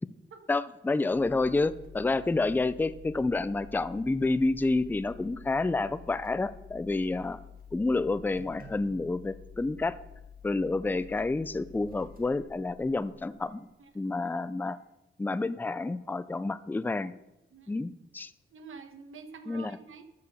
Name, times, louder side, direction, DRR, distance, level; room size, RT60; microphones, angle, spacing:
voice 1, 0.5-7.4 7.7-10.0 10.4-13.7 13.9-14.8 15.2-17.1 17.7-18.3 19.5-19.7, left 3 dB, 10° left, 15 dB, 0.3 m, -29 dB
sound 1, 1.1-13.7, left 6 dB, 45° right, 1.9 m, -50 dB
voice 2, 18.5-20.0, right 5 dB, 80° right, 7 dB, 1.1 m, -47 dB
12.5 x 4.8 x 6.9 m, 0.96 s
wide cardioid pair, 120°, 21 cm